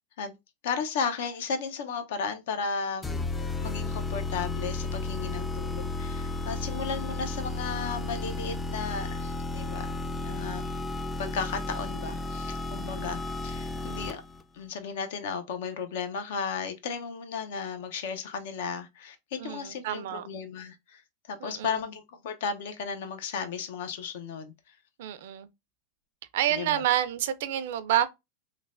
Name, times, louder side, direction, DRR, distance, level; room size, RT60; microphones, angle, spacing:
voice 1, 0.6-3.1 3.6-10.7 11.2-14.2 14.5-21.0 21.3-24.8 26.5-26.8, left 5 dB, 75° left, 0.6 m, -34 dB
sound 1, 3.0-14.4, left 2 dB, 15° left, 0.3 m, -33 dB
voice 2, 19.4-20.2 21.4-21.8 25.0-25.5 26.3-28.1, right 12 dB, 70° right, 0.3 m, -28 dB
3.1 x 2.1 x 2.4 m
supercardioid pair, 120°, 0 cm